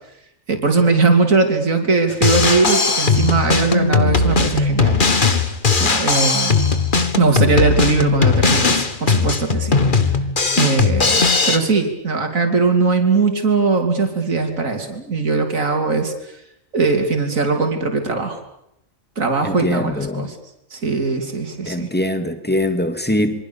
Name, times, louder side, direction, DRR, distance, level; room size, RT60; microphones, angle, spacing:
voice 1, 0.5-5.0 5.8-6.6 7.1-9.8 10.5-16.1 16.7-18.4 19.2-20.4 20.7-21.9, right 4 dB, 80° right, 5 dB, 3.5 m, -19 dB
Drum kit, 2.1-11.6, left 4 dB, 40° left, 1.7 m, -18 dB
voice 2, 19.4-20.3 21.7-23.4, left 1 dB, 5° left, 9 dB, 2.1 m, -22 dB
27.0 x 24.0 x 7.0 m, 0.78 s
omnidirectional pair, 1.4 m